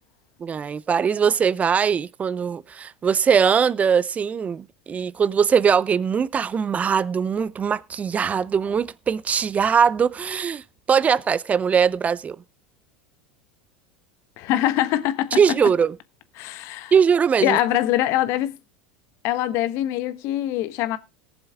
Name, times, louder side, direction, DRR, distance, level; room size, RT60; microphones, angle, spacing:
voice 1, 0.4-10.6 10.9-12.4 15.4-15.9 16.9-17.6, right 7 dB, 25° right, 0.6 m, -21 dB
voice 2, 14.4-15.4 16.4-16.9 17.4-18.5 19.2-21.0, left 13 dB, 55° left, 1.2 m, -23 dB
18.0 x 7.2 x 3.5 m
hypercardioid pair, 90°, 5 cm